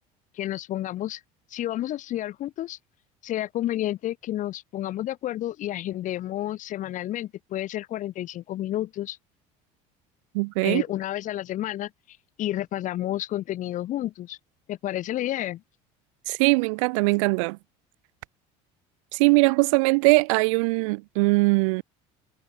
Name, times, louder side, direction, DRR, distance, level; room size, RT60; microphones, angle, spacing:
voice 1, 0.3-1.2 1.5-2.8 3.2-9.2 10.6-14.4 14.7-15.6, left 13 dB, 55° left, 2.4 m, -30 dB
voice 2, 10.3-10.8 16.3-17.6 19.1-21.8, right 28 dB, 85° right, 0.9 m, -21 dB
supercardioid pair, 105°, 16 cm